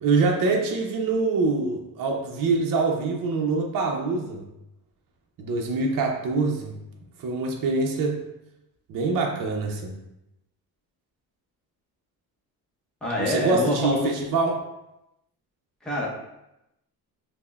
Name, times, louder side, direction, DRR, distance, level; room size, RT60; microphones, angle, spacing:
voice 1, 0.0-4.4 5.4-6.8 7.2-8.2 8.9-9.9 13.2-14.6, right 3 dB, 60° right, 1 dB, 0.6 m, -24 dB
voice 2, 13.0-14.1 15.8-16.1, left 1 dB, ahead, -6 dB, 0.7 m, -26 dB
5.7 x 2.1 x 2.3 m, 0.88 s
cardioid pair, 145°, 37 cm